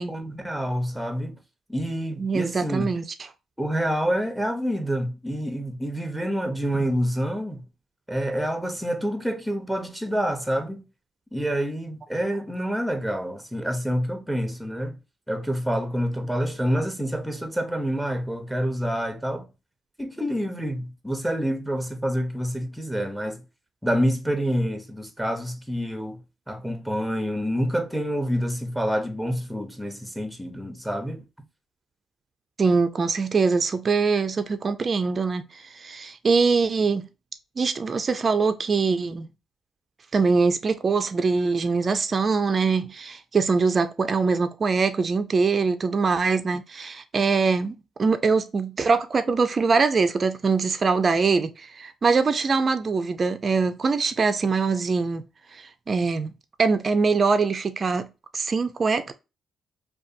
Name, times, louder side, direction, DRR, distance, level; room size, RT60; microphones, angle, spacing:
voice 1, 0.0-1.4 1.7-2.9 3.6-7.6 8.1-10.8 11.3-15.0 15.3-19.5 20.0-23.4 23.8-26.2 26.5-31.2, equal, ahead, 0.6 m, -27 dB
voice 2, 2.2-3.1 32.6-37.1 37.6-39.3 40.1-55.2 55.5-56.3 56.6-58.1 58.3-59.1, right 4 dB, 40° right, 0.3 m, -23 dB
2.5 x 2.2 x 2.4 m
cardioid pair, 75°, 0 cm